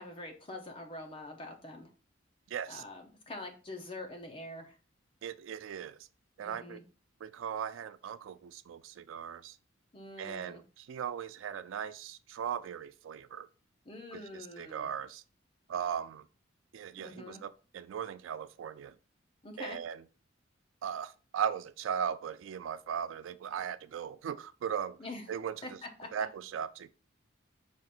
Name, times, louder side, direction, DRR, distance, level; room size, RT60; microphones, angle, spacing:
voice 1, 0.0-1.9 2.7-4.7 6.4-6.8 9.9-10.6 13.8-14.9 17.0-17.4 19.4-19.8 25.0-25.3 25.6-26.3, left 2 dB, 25° left, 0.7 m, -45 dB
voice 2, 2.5-2.8 5.2-6.0 6.4-6.8 7.2-9.6 10.2-13.5 14.1-15.2 15.7-16.3 16.7-18.9 19.6-20.0 20.8-25.0 25.3-25.5 26.1-26.9, right 8 dB, 80° right, 0.3 m, -38 dB
5.0 x 2.5 x 4.2 m
head